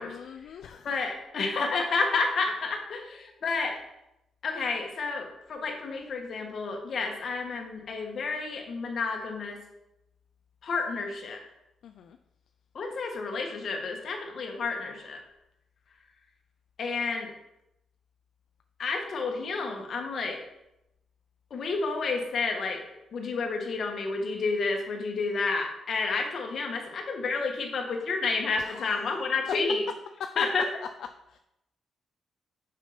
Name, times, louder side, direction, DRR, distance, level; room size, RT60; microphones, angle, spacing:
voice 1, 0.0-0.9 11.8-12.2 28.6-29.0 30.2-30.4 31.3-31.4, left 7 dB, 75° left, 6 dB, 0.4 m, -39 dB
voice 2, 0.8-3.8 4.4-9.6 10.6-11.4 12.7-15.2 16.8-17.3 18.8-20.4 21.5-22.8 23.1-29.8 30.4-30.6, left 4 dB, 55° left, 2 dB, 1.6 m, -30 dB
6.4 x 5.7 x 5.2 m, 0.88 s
cardioid pair, 110°, 0 cm